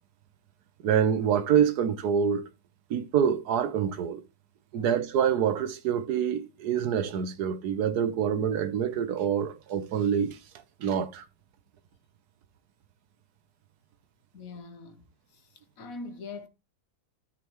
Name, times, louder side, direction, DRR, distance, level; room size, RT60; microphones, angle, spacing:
voice 1, 0.8-2.4 2.9-4.2 4.7-10.4 10.8-11.2, right 8 dB, 90° right, 1.5 m, -26 dB
voice 2, 14.3-15.0 15.3-15.4 15.8-16.5, left 3 dB, 65° left, 1.6 m, -42 dB
13.5 x 5.8 x 3.1 m
omnidirectional pair, 1.6 m